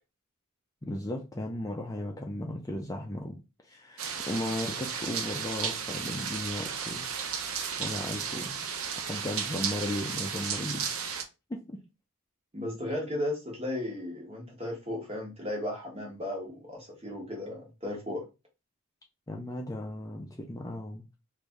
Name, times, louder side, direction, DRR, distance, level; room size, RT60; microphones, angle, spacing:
voice 1, 0.8-7.1 7.8-8.6 9.0-11.0 11.5-11.8 19.3-21.0, left 1 dB, 15° left, 1 dB, 0.4 m, -36 dB
sound 1, 4.0-11.2, right 7 dB, 70° right, 0.6 m, -34 dB
voice 2, 12.5-18.2, left 1 dB, 25° right, -1 dB, 1.3 m, -35 dB
3.3 x 2.6 x 3.5 m, 0.27 s
head